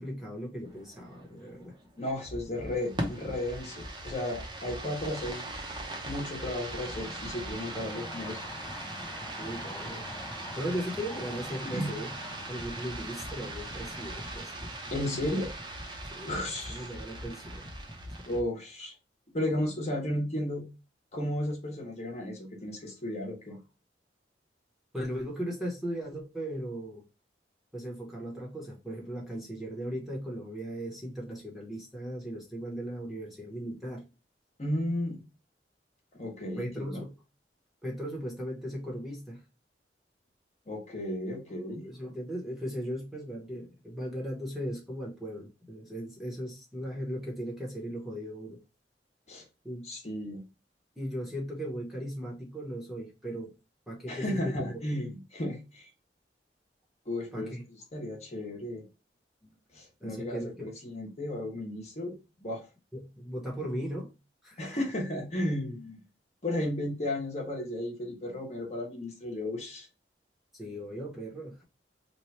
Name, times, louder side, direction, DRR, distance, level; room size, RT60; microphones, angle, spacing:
voice 1, 0.0-1.7 9.4-10.1 10.6-12.1 12.5-14.7 16.1-16.4 16.7-17.7 24.9-27.0 27.7-34.0 36.6-37.2 37.8-39.4 41.8-48.6 49.6-49.8 51.0-53.5 53.9-54.8 57.3-57.6 59.4-59.5 60.0-60.7 62.9-64.1 64.4-64.8 70.5-71.6, equal, ahead, 0.9 m, -37 dB
sound 1, 0.7-18.4, right 1 dB, 25° right, 0.7 m, -40 dB
voice 2, 2.0-5.5 6.0-8.5 11.6-11.9 14.9-15.5 16.3-16.8 18.2-18.9 19.3-20.6 21.1-23.6 34.6-35.2 36.1-37.0 40.7-41.9 49.3-49.4 49.8-50.4 54.1-55.9 57.1-57.6 57.9-58.9 59.7-62.2 62.4-62.7 64.6-66.0 66.4-69.9, left 1 dB, 40° left, 1.0 m, -34 dB
sound 2, 6.7-14.4, left 2 dB, 15° left, 0.4 m, -46 dB
3.1 x 2.2 x 4.1 m
head